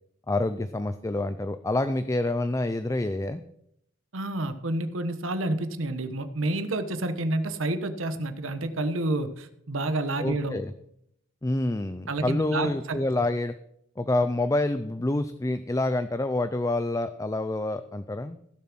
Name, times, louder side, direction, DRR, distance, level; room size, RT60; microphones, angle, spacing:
voice 1, 0.3-3.4 10.2-10.7 11.4-13.5 14.0-18.4, left 2 dB, 15° left, 11 dB, 0.5 m, -27 dB
voice 2, 4.1-10.6 12.1-13.0, right 2 dB, 85° right, 10 dB, 1.1 m, -29 dB
16.0 x 7.1 x 6.1 m, 0.74 s
head